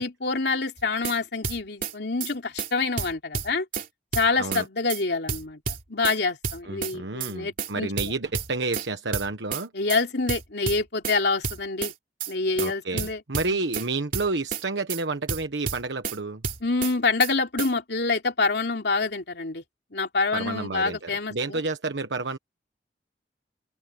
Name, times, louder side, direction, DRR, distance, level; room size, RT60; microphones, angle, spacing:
voice 1, 0.0-3.7 4.1-5.6 5.9-8.1 9.7-11.9 12.3-13.2 13.5-13.6 16.6-19.6 19.9-21.6, left 3 dB, 65° left, 3.1 m, -26 dB
sound 1, 0.8-1.2 1.4-1.9 2.2-2.3 2.6-2.7 3.0-3.9 4.1-4.6 4.9-5.0 5.3-6.2 6.4-6.9 7.2-7.3 7.6-7.7 8.0-8.9 9.1-9.6 9.9-10.0 10.3-11.2 11.4-11.9 12.2-12.3 12.6-12.7 13.0-13.9 14.1-14.6 14.9-15.0 15.3-16.2 16.4-16.9 17.2-17.3 17.6-17.7, right 5 dB, 50° right, 3.1 m, -30 dB
voice 2, 6.6-9.7 12.6-16.4 20.3-22.4, right 3 dB, 80° right, 1.2 m, -30 dB
open air
head